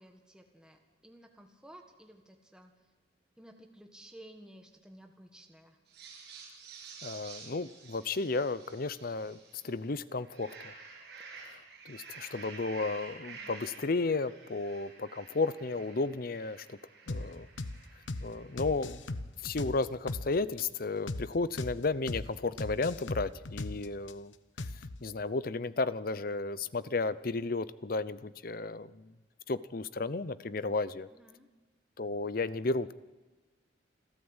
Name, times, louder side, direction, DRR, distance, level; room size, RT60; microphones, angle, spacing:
voice 1, 0.0-2.7 3.4-5.8 13.3-13.7 31.1-31.5, right 1 dB, 5° right, 3 dB, 1.6 m, -55 dB
sound 1, 5.9-9.8 10.2-18.8, right 5 dB, 60° right, 7.8 m, -50 dB
voice 2, 7.0-9.4 9.6-10.7 11.4-11.6 11.8-16.8 17.1-17.5 18.2-19.0 19.4-24.3 25.0-29.1 29.5-31.1 32.0-32.9, left 3 dB, 50° left, 16 dB, 0.7 m, -33 dB
sound 2, 17.1-17.3 17.6-17.8 18.1-18.3 18.6-20.3 20.6-20.7 21.1-21.3 21.6-21.8 22.1-22.3 22.6-24.1 24.6-25.0, left 2 dB, 85° left, 1.0 m, -37 dB
28.0 x 13.0 x 8.1 m, 1.3 s
head